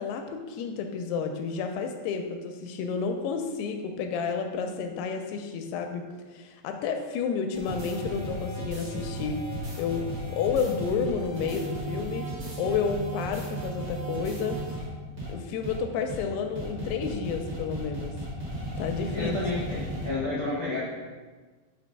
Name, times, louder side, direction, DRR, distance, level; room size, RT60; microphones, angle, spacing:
voice 1, 0.0-9.4 9.8-12.3 12.6-14.8 15.3-18.1 18.8-19.4 19.7-19.8, left 5 dB, 85° left, 5 dB, 2.5 m, -31 dB
sound 1, 7.5-14.8 15.2-15.3 15.6-15.8 16.1-16.2 16.5-20.1, right 1 dB, 60° right, 1.0 m, -35 dB
voice 2, 19.1-20.8, left 3 dB, 60° left, -8 dB, 1.4 m, -30 dB
5.3 x 4.5 x 5.2 m, 1.3 s
omnidirectional pair, 4.8 m